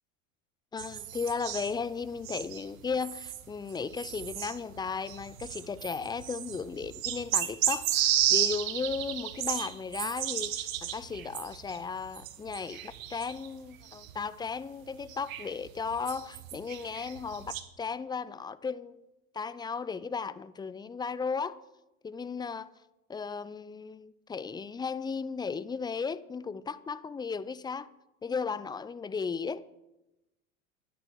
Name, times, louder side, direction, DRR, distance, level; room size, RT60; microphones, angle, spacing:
voice 1, 0.7-19.0 19.3-21.6 22.0-22.7 23.1-27.9 28.2-29.6, left 5 dB, 10° left, 0.5 m, -35 dB
sound 1, 0.8-13.5 13.7-14.3 14.9-17.6, right 11 dB, 70° right, 1.6 m, -33 dB
12.5 x 11.0 x 7.8 m
hypercardioid pair, 95°, 42 cm